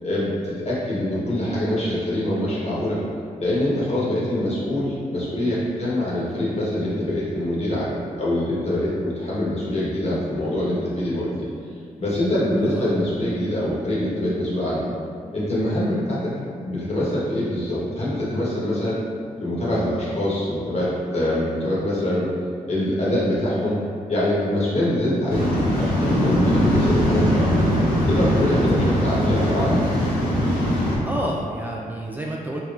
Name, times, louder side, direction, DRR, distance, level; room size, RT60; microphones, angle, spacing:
voice 1, 0.0-3.0 3.4-11.5 12.0-14.9 15.3-16.3 16.6-19.0 19.4-22.3 22.7-23.8 24.1-27.7 28.1-29.8, left 1 dB, 45° left, -8 dB, 1.2 m, -24 dB
voice 2, 12.6-12.9 31.0-32.6, right 1 dB, 10° right, -3 dB, 0.3 m, -29 dB
Waves surf, 25.3-31.0, equal, 80° left, 0.7 m, -20 dB
3.3 x 2.9 x 2.5 m, 2.2 s
cardioid pair, 65°, 15 cm